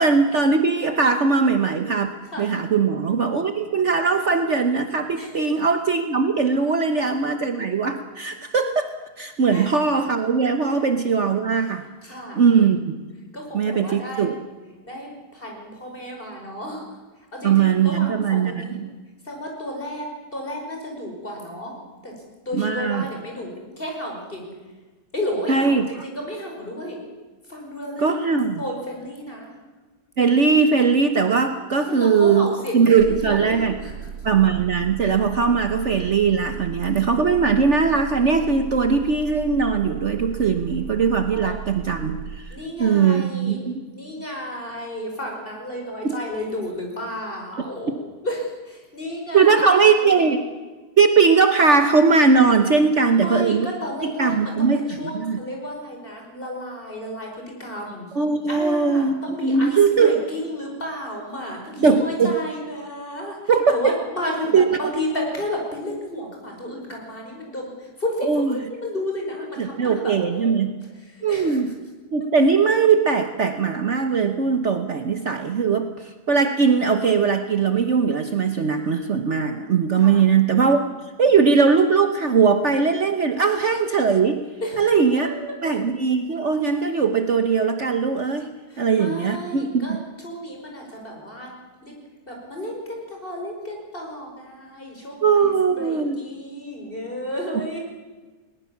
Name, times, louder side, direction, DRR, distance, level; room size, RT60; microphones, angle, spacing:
voice 1, 0.0-2.1 2.4-8.9 9.2-11.8 12.3-13.0 13.5-14.4 17.4-18.9 22.5-23.1 25.5-25.8 28.0-28.5 30.2-32.5 32.7-33.7 34.2-43.8 49.3-50.4 51.0-53.7 54.2-55.4 58.1-59.1 59.4-60.1 61.8-62.3 63.5-63.9 64.5-64.6 68.3-68.5 69.6-70.7 71.2-71.7 72.1-80.8 81.2-84.4 84.8-85.3 85.6-88.5 88.8-90.0 95.2-96.2, right 5 dB, 50° right, 7 dB, 1.3 m, -20 dB
voice 2, 12.0-12.6 13.3-14.3 14.8-16.9 17.3-18.8 19.2-21.8 22.0-24.5 25.1-27.0 27.4-29.6 31.9-33.9 41.3-41.6 42.5-48.0 48.2-50.3 53.0-58.1 58.5-63.4 63.7-70.5 71.0-71.6 80.0-80.2 84.6-84.8 85.2-85.6 88.7-90.0 90.2-91.5 91.8-91.9 92.2-97.8, left 1 dB, 35° left, 0 dB, 5.7 m, -32 dB
sound 1, 33.0-42.4, right 8 dB, 80° right, 1.9 m, -36 dB
20.5 x 19.5 x 7.2 m, 1.3 s
omnidirectional pair, 1.7 m